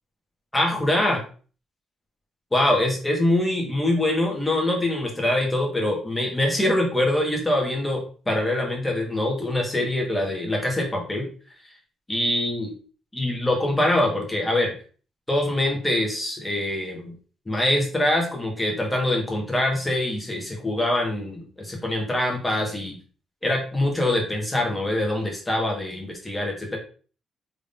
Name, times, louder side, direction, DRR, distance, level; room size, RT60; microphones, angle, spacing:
voice 1, 0.5-1.2 2.5-11.3 12.1-12.7 13.1-14.7 15.3-17.1 17.5-23.0 23.4-26.8, left 1 dB, 15° left, 0 dB, 1.5 m, -24 dB
3.7 x 3.6 x 2.6 m, 0.39 s
cardioid pair, 90°, 0 cm